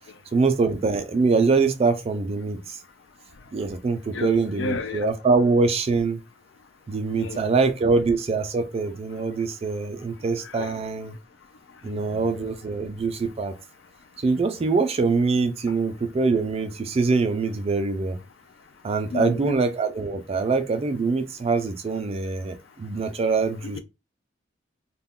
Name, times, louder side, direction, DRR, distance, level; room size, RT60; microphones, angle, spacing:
voice 1, 0.3-2.8 3.5-6.2 6.9-11.2 11.8-13.5 14.2-18.2 18.8-23.8, right 4 dB, 30° right, 0.3 m, -24 dB
voice 2, 4.6-5.1 7.2-7.4 10.5-10.7 19.1-19.6, left 3 dB, 65° left, 0.4 m, -30 dB
2.2 x 2.1 x 3.5 m
head